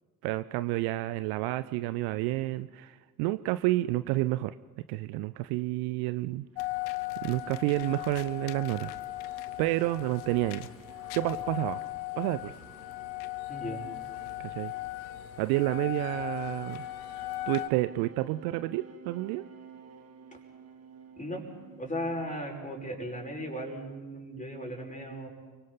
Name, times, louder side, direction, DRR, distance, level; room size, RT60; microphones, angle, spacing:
voice 1, 0.2-4.5 4.9-6.5 7.2-8.9 9.6-10.7 11.1-11.8 12.2-12.5 14.4-14.7 15.4-16.8 17.5-19.5, right 18 dB, 55° right, 15 dB, 0.6 m, -30 dB
sound 1, 6.4-22.8, right 5 dB, 30° right, 1.9 m, -54 dB
sound 2, 6.6-17.7, left 16 dB, 55° left, 0.9 m, -38 dB
voice 2, 13.5-13.9 21.2-21.4 21.8-25.3, equal, 15° left, 1 dB, 5.3 m, -36 dB
29.5 x 23.5 x 4.1 m, 1.4 s
figure-of-eight pair, 50°, 46 cm